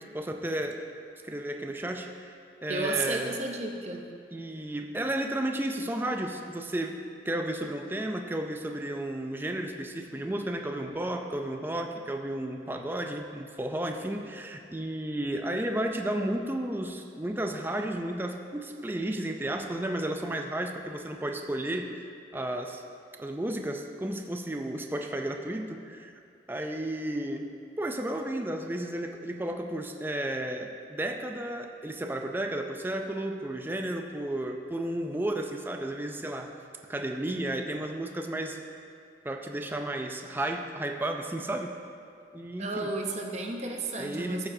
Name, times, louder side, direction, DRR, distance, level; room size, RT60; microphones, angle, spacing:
voice 1, 0.1-0.8 1.2-2.4 2.6-3.3 4.3-7.0 7.3-22.0 22.3-22.8 23.2-26.1 26.5-27.5 27.8-36.5 36.9-38.6 39.2-41.7 42.3-42.9 44.0-44.5, right 1 dB, 10° right, 4 dB, 0.4 m, -33 dB
voice 2, 2.7-4.0 42.6-44.5, right 2 dB, 40° right, 2 dB, 0.7 m, -33 dB
13.5 x 7.1 x 2.7 m, 2.3 s
head